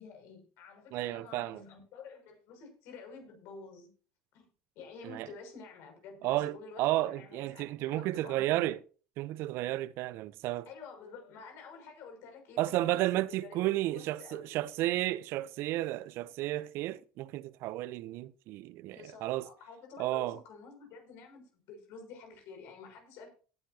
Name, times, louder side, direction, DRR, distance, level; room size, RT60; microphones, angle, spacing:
voice 1, 0.0-3.9 4.3-4.5 4.7-8.7 10.6-14.5 18.9-23.3, left 4 dB, 65° left, 6.1 m, -50 dB
voice 2, 0.9-1.6 5.0-5.3 6.2-8.8 9.2-10.7 12.6-19.5 20.0-20.4, right 16 dB, 60° right, 0.6 m, -32 dB
18.0 x 10.0 x 2.8 m
hypercardioid pair, 80°, 5 cm